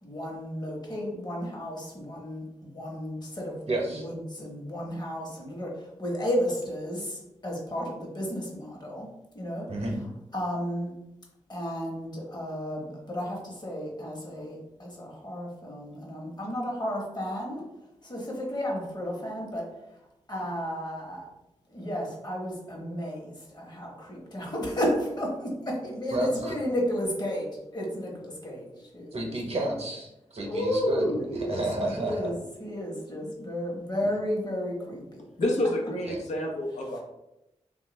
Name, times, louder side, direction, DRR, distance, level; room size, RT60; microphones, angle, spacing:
voice 1, 0.0-9.1 9.3-9.7 10.3-10.9 11.5-17.6 18.0-19.7 20.3-21.3 21.7-29.4 30.4-35.2, equal, 35° left, -2 dB, 1.0 m, -33 dB
voice 2, 3.7-4.0 9.7-10.0 26.1-26.5 29.1-32.3 36.1-36.2, right 1 dB, 55° right, 0 dB, 0.8 m, -31 dB
voice 3, 35.4-37.0, left 1 dB, 75° left, -1 dB, 0.7 m, -28 dB
3.1 x 2.3 x 3.1 m, 0.91 s
cardioid pair, 70°, 12 cm